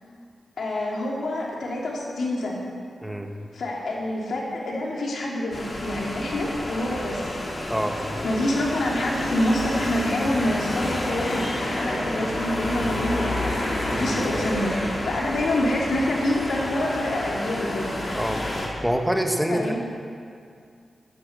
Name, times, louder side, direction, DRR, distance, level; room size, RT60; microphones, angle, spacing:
voice 1, 0.6-2.6 3.5-7.3 8.2-13.6 13.9-17.9 19.5-19.8, left 1 dB, 80° left, -3 dB, 3.1 m, -26 dB
sound 1, 5.5-18.7, left 1 dB, 40° left, 3.0 m, -29 dB
voice 2, 18.8-19.8, equal, 5° right, 3 dB, 1.6 m, -25 dB
14.0 x 10.5 x 6.8 m, 2.3 s
wide cardioid pair, 80°, 0 cm